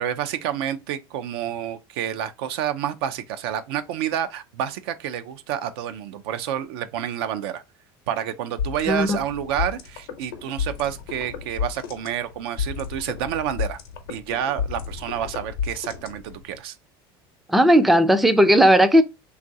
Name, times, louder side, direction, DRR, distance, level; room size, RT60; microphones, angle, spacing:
voice 1, 0.0-7.6 8.1-13.8 14.1-16.8, right 10 dB, 80° right, 0.4 m, -29 dB
sound 1, 8.6-16.6, left 7 dB, 85° left, 0.7 m, -32 dB
voice 2, 8.9-9.2 17.5-19.0, equal, ahead, 0.3 m, -16 dB
3.0 x 2.4 x 2.6 m
supercardioid pair, 105°, 13 cm